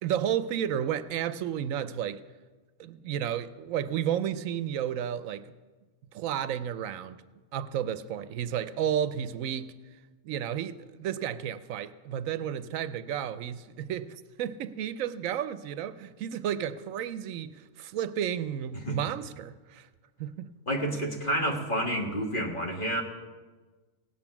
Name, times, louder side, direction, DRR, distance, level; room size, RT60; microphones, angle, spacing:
voice 1, 0.0-2.2 2.8-5.5 6.1-7.2 7.5-9.7 10.2-19.9 20.2-20.5, right 9 dB, 80° right, 1.0 m, -32 dB
voice 2, 20.7-23.0, equal, 40° left, 1.6 m, -29 dB
17.0 x 8.9 x 5.9 m
omnidirectional pair, 1.4 m